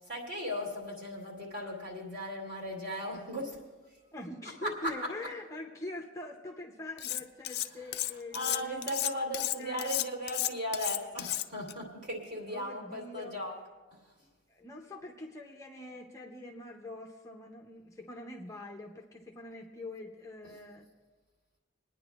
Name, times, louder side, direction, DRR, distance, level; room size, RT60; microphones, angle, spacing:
voice 1, 0.1-3.6 4.6-4.7 8.3-13.5, equal, 40° right, -3 dB, 2.7 m, -37 dB
voice 2, 4.1-8.7 9.6-9.9 12.5-13.4 14.5-20.9, left 2 dB, 15° left, 0 dB, 0.6 m, -44 dB
Cutlery silverware, 7.0-7.7 7.9-11.7, left 15 dB, 50° left, 0.3 m, -33 dB
29.0 x 9.8 x 2.4 m, 1.3 s
head